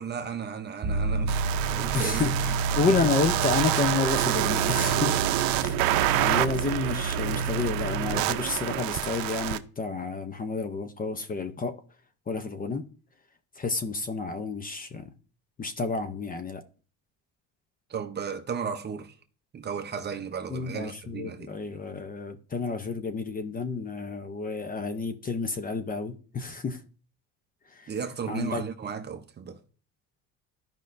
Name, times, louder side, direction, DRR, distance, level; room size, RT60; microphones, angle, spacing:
voice 1, 0.0-2.3 17.9-19.1 19.5-21.5 27.9-29.6, right 6 dB, 30° right, 0.7 m, -35 dB
sound 1, 0.8-8.2, right 3 dB, 50° right, 2.0 m, -30 dB
sound 2, 1.3-9.6, right 15 dB, 70° right, 0.6 m, -28 dB
voice 2, 1.9-5.2 5.6-11.7 12.3-12.8 13.6-15.1 15.6-16.6 20.5-26.8 27.7-27.9 28.3-28.6, left 4 dB, 25° left, 0.6 m, -30 dB
13.5 x 5.3 x 2.6 m
cardioid pair, 135°, 36 cm